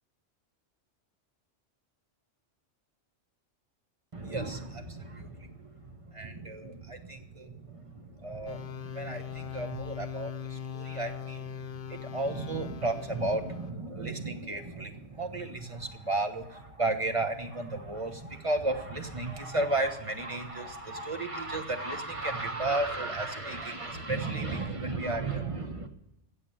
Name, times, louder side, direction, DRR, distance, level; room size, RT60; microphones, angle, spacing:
voice 1, 4.1-11.4 11.9-25.9, right 2 dB, 30° right, 5 dB, 1.4 m, -34 dB
sound 1, 8.5-13.7, left 8 dB, 50° left, 0.9 m, -40 dB
15.5 x 7.2 x 8.8 m, 0.90 s
omnidirectional pair, 1.2 m